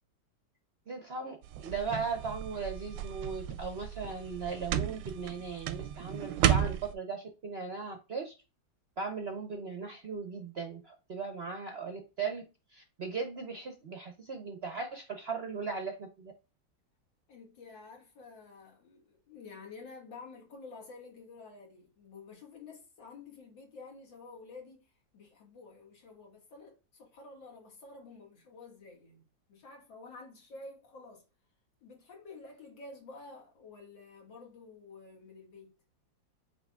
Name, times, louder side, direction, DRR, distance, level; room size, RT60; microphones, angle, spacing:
voice 1, 0.9-8.3 9.0-12.4 12.7-16.3, right 5 dB, 60° right, 0.6 m, -38 dB
sound 1, 1.4-6.9, right 10 dB, 85° right, 1.3 m, -33 dB
voice 2, 17.3-31.2 31.8-35.7, left 3 dB, 85° left, 2.4 m, -50 dB
7.6 x 3.0 x 2.3 m
omnidirectional pair, 2.0 m